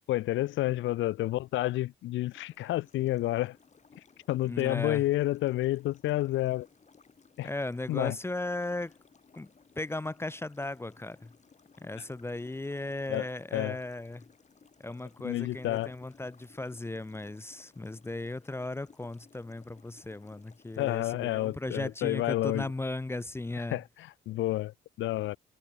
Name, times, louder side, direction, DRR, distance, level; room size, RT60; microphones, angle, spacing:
voice 1, 0.0-3.6 4.3-6.7 7.4-7.5 7.9-8.2 12.0-12.1 13.1-13.3 13.5-13.8 15.2-15.9 20.8-22.7 23.7-25.4, left 16 dB, 75° left, 0.5 m, -30 dB
sound 1, 2.3-21.2, left 5 dB, 35° left, 4.3 m, -61 dB
voice 2, 4.4-5.0 7.4-8.9 9.3-9.5 9.8-11.3 11.8-14.2 14.8-23.8, left 2 dB, 10° left, 0.6 m, -36 dB
cardioid pair, 90°, 20 cm